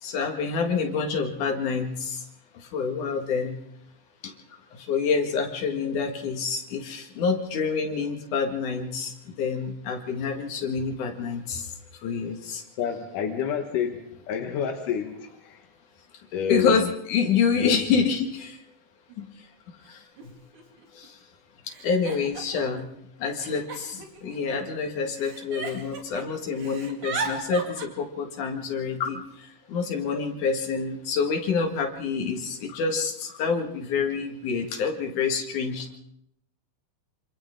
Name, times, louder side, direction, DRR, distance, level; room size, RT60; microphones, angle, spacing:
voice 1, 0.0-2.2 2.5-3.6 4.2-4.3 4.7-11.7 12.0-12.6 16.5-18.6 19.2-19.3 19.9-20.0 20.9-21.2 21.8-22.9 23.2-36.0, left 5 dB, 75° left, 3 dB, 3.5 m, -27 dB
voice 2, 12.8-15.7 16.3-16.9 17.6-17.8, left 8 dB, 90° left, 4 dB, 2.9 m, -29 dB
Giggle, 19.1-19.2 20.2-20.3 20.5-21.1 21.7-22.8 23.4-24.7 25.2-26.2 26.5-27.9, right 4 dB, 70° right, 3.7 m, -36 dB
26.5 x 25.5 x 3.8 m, 0.71 s
omnidirectional pair, 3.6 m